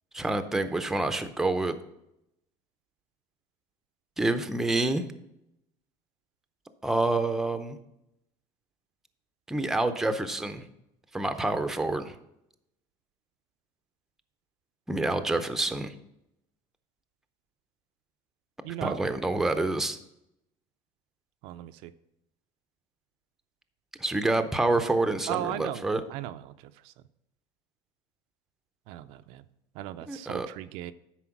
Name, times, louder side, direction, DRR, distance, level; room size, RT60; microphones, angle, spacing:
voice 1, 0.1-1.8 4.2-5.1 6.8-7.8 9.5-10.7 11.1-12.1 14.9-15.9 18.8-20.0 24.0-26.0 30.1-30.5, right 2 dB, 5° right, 9 dB, 0.5 m, -27 dB
voice 2, 18.6-19.0 21.4-21.9 25.3-26.4 28.9-29.4 29.8-30.9, right 13 dB, 65° right, 11 dB, 0.4 m, -36 dB
9.9 x 4.4 x 5.9 m, 0.82 s
cardioid pair, 150°, 11 cm